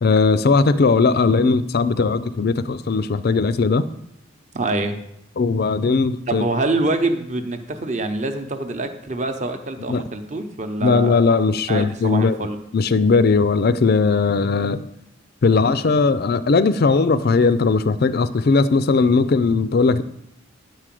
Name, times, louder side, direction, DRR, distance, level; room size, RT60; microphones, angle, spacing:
voice 1, 0.0-3.9 5.4-6.4 9.9-10.0 10.8-12.4 12.7-14.8 15.4-20.0, left 4 dB, 45° left, 14 dB, 0.4 m, -18 dB
voice 2, 4.5-5.0 6.3-11.2 11.7-12.6, right 2 dB, 35° right, 7 dB, 0.8 m, -25 dB
9.3 x 4.8 x 7.5 m, 0.79 s
head